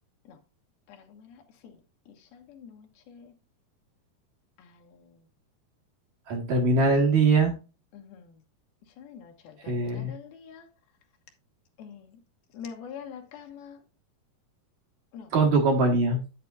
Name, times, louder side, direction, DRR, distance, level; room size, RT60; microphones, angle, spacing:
voice 1, 0.9-1.8 2.1-3.3 4.6-5.3 7.9-8.4 8.9-10.7 11.8-12.2 12.5-13.8 15.1-15.3, left 7 dB, 75° left, 3.0 m, -46 dB
voice 2, 6.3-7.5 9.7-10.1 15.3-16.2, right 3 dB, 60° right, 2.3 m, -22 dB
9.3 x 8.1 x 2.4 m
omnidirectional pair, 4.5 m